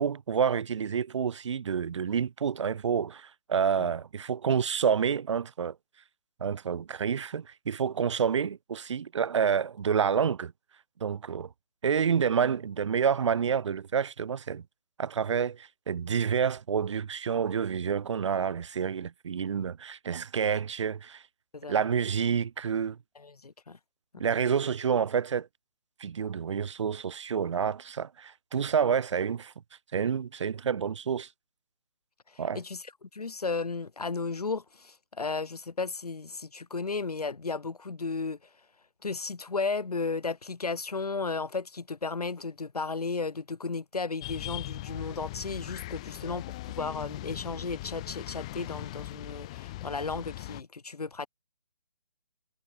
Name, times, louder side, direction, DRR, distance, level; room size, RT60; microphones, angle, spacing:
voice 1, 0.0-5.7 6.4-10.5 11.0-11.5 11.8-14.6 15.0-21.2 21.7-23.0 24.2-25.5 26.0-29.5 29.9-31.3 32.4-32.6, right 7 dB, 50° right, 2.5 m, -28 dB
voice 2, 21.5-21.9 23.2-23.8 24.1-24.2 32.3-38.4 39.0-51.3, left 4 dB, 75° left, 3.6 m, -34 dB
sound 1, 44.2-50.6, left 18 dB, 10° left, 0.4 m, -40 dB
figure-of-eight pair, 150°, 20 cm